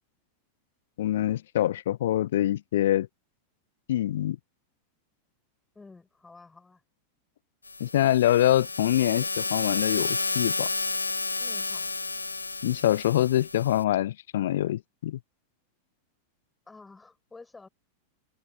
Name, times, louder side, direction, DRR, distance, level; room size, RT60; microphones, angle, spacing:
voice 1, 1.0-3.1 3.9-4.4 7.8-10.7 12.6-15.2, left 12 dB, 60° left, 0.6 m, -25 dB
voice 2, 5.7-6.8 11.4-11.9 16.7-17.7, left 3 dB, 10° left, 6.1 m, -50 dB
sound 1, 7.7-13.8, left 3 dB, 80° left, 2.6 m, -31 dB
figure-of-eight pair, 90°, 0 cm